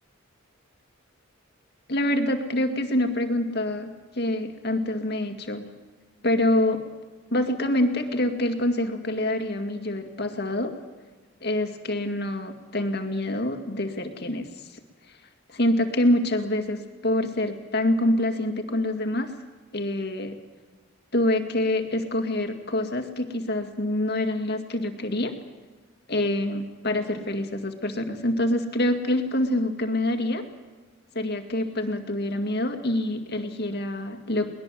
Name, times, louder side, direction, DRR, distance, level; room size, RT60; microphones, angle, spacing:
voice 1, 1.9-5.7 6.2-6.8 7.3-10.7 11.4-14.5 15.5-19.3 19.7-20.4 21.1-25.3 26.1-30.5 31.1-34.5, left 1 dB, 50° left, 7 dB, 2.1 m, -26 dB
23.0 x 19.5 x 7.6 m, 1.3 s
head